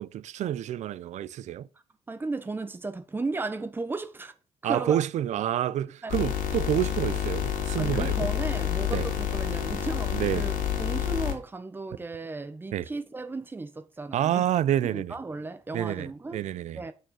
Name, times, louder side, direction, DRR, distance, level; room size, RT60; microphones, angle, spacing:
voice 1, 0.0-1.7 4.6-8.3 8.9-9.1 10.1-10.5 12.7-12.9 14.1-15.1 15.7-16.8, right 11 dB, 60° right, 0.6 m, -28 dB
voice 2, 2.1-4.3 4.6-5.0 6.0-6.1 7.8-14.4 14.8-16.4 16.7-16.9, right 3 dB, 15° right, 1.1 m, -35 dB
sound 1, 6.1-11.3, left 9 dB, 85° left, 3.0 m, -28 dB
9.1 x 6.5 x 6.4 m
cardioid pair, 140°, 13 cm